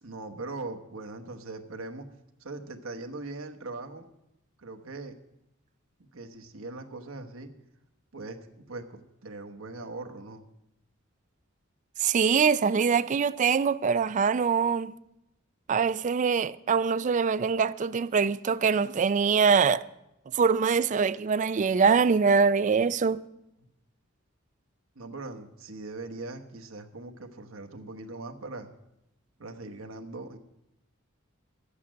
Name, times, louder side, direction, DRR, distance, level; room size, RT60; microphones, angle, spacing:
voice 1, 0.0-2.1 2.4-4.1 4.6-5.1 6.0-7.5 8.1-8.4 8.7-10.4 24.9-28.7 29.4-30.4, right 3 dB, 80° right, 1.1 m, -40 dB
voice 2, 12.0-14.9 15.7-19.8 20.3-23.2, right 5 dB, 35° right, 0.3 m, -23 dB
12.0 x 8.3 x 6.2 m
head